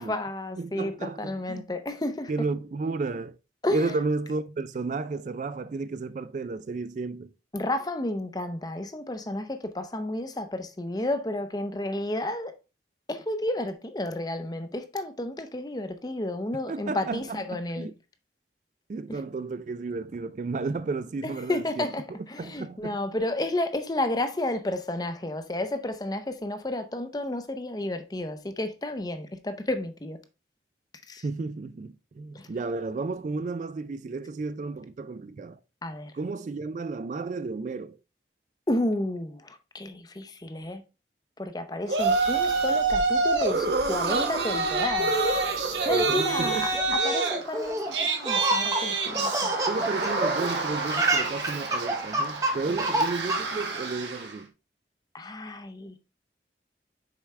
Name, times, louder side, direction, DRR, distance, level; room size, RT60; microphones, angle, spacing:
voice 1, 0.0-2.5 3.6-3.9 7.5-12.5 13.1-17.9 19.1-19.2 21.5-22.0 22.3-30.2 31.1-31.2 32.3-32.4 35.8-36.1 38.7-40.8 41.4-45.2 45.8-49.5 55.1-56.0, left 1 dB, 20° left, 0.6 m, -31 dB
voice 2, 0.6-1.6 2.3-3.4 3.7-7.3 16.7-17.9 18.9-21.9 22.4-23.0 31.2-35.6 36.1-38.0 45.9-47.0 49.7-54.5, right 3 dB, 45° right, 0.3 m, -33 dB
Yell, 41.9-43.5 43.9-54.3, right 3 dB, 90° right, 1.5 m, -28 dB
sound 1, 42.0-46.9, right 3 dB, 65° right, 0.8 m, -30 dB
Laughter, 46.7-50.5 50.8-53.7, right 2 dB, 20° right, 0.7 m, -28 dB
6.6 x 4.8 x 3.2 m
head